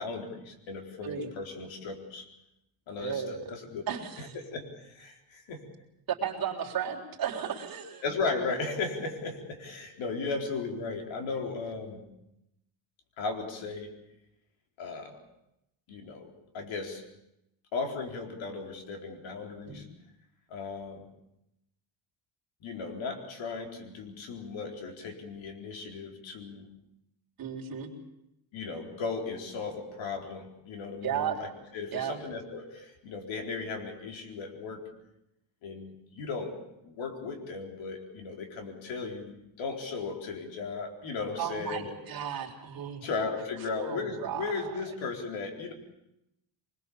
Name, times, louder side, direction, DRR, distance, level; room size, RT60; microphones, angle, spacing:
voice 1, 0.0-2.3 2.9-3.8 4.2-5.6 8.0-12.0 13.2-13.9 14.8-15.2 15.9-17.0 17.7-19.9 20.5-21.1 22.6-26.7 28.5-34.8 35.6-36.5 36.8-41.9 43.0-45.7, left 4 dB, 80° left, 3 dB, 4.3 m, -36 dB
voice 2, 3.0-3.5 3.9-4.4 6.1-8.0 19.6-19.8 27.4-27.9 31.0-31.4 31.9-32.2 41.4-43.0 43.8-44.7, right 8 dB, 50° right, 0 dB, 3.7 m, -34 dB
24.0 x 21.5 x 7.1 m, 0.84 s
cardioid pair, 170°, 45 cm